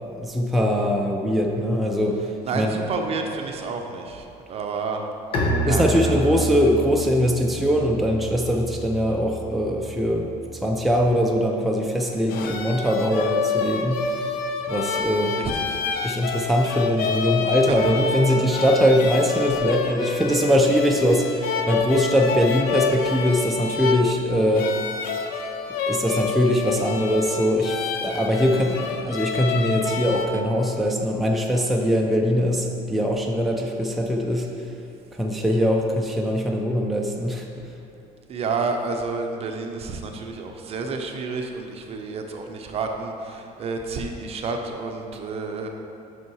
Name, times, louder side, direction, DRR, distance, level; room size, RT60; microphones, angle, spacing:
voice 1, 0.1-2.3 2.5-2.8 5.7-14.0 14.7-15.3 16.0-24.7 25.9-34.5 35.2-37.4, equal, ahead, 0 dB, 0.5 m, -22 dB
voice 2, 2.4-5.0 5.7-6.3 15.4-15.8 17.8-17.9 38.3-45.7, right 4 dB, 40° right, 3 dB, 0.6 m, -30 dB
Bowed string instrument, 5.3-10.9, right 1 dB, 35° left, 1.2 m, -29 dB
sound 1, 12.1-30.3, left 5 dB, 75° left, 0.6 m, -28 dB
5.7 x 5.6 x 4.6 m, 2.6 s
cardioid pair, 125°, 15 cm